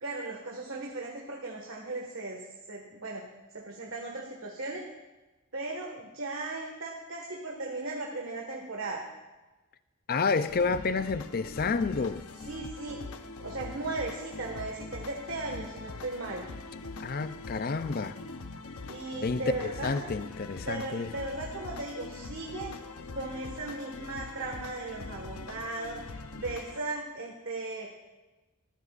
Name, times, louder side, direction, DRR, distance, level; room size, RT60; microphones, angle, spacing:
voice 1, 0.0-2.4 2.7-3.2 3.5-4.8 5.5-9.0 12.5-13.0 13.4-16.5 18.9-20.1 20.7-22.7 23.2-27.9, right 2 dB, 65° right, 1.7 m, -37 dB
voice 2, 10.1-12.2 17.0-18.2 19.2-21.1, left 4 dB, 45° left, 0.5 m, -30 dB
sound 1, 10.3-26.8, left 3 dB, 85° left, 0.8 m, -43 dB
20.5 x 14.5 x 2.5 m
head